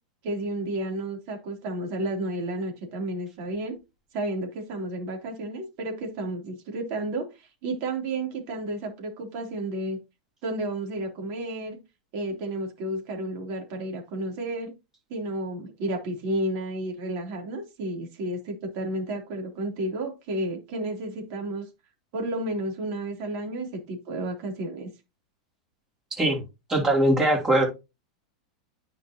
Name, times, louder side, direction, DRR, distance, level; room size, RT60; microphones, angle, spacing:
voice 1, 0.2-3.8 4.1-10.0 10.4-11.8 12.1-14.7 15.1-21.7 22.1-24.9, right 1 dB, 50° right, 3.4 m, -32 dB
voice 2, 26.7-27.7, right 1 dB, 15° right, 3.2 m, -21 dB
9.6 x 5.3 x 2.9 m
supercardioid pair, 135°, 4 cm